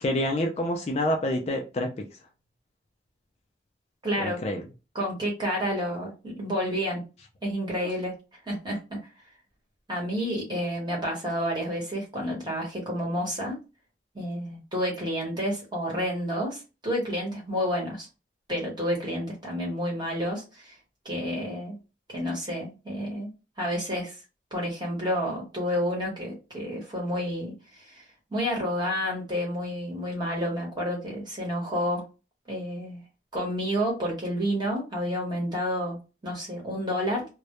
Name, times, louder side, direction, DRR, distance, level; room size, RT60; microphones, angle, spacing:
voice 1, 0.0-2.1 4.2-4.6, left 1 dB, 35° left, 2 dB, 0.3 m, -27 dB
voice 2, 4.0-4.4 4.9-7.0 7.4-8.1 8.4-9.0 9.9-13.6 14.1-18.1 18.5-20.8 21.0-21.8 22.1-23.3 23.6-24.2 24.5-32.0 32.5-33.0 33.3-37.2, equal, 25° right, -2 dB, 0.9 m, -30 dB
2.2 x 2.0 x 2.8 m, 0.30 s
head